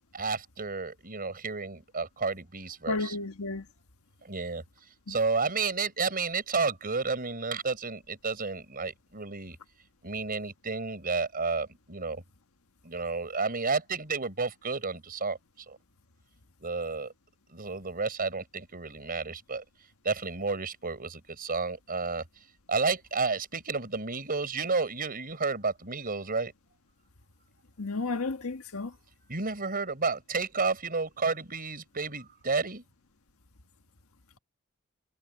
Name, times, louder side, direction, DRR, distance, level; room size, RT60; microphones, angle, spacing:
voice 1, 0.1-3.2 4.2-4.6 5.1-9.6 10.0-12.2 12.8-15.8 16.6-17.1 17.5-19.6 20.0-22.2 22.7-26.5 29.3-32.8, right 4 dB, 45° right, 5.1 m, -31 dB
voice 2, 2.9-3.6 5.1-5.2 27.8-28.9, left 3 dB, 85° left, 1.6 m, -32 dB
head